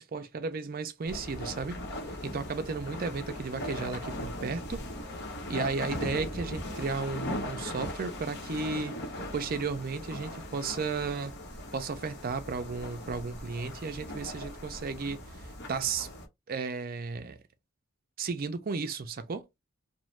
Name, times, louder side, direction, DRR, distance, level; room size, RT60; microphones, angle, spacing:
voice 1, 0.0-1.8 2.2-4.8 5.5-9.0 9.3-11.3 11.7-16.1 16.5-17.4 18.2-19.4, right 4 dB, 45° right, 0.4 m, -34 dB
sound 1, 1.1-16.3, left 1 dB, 55° left, 0.9 m, -39 dB
2.6 x 2.1 x 3.1 m
head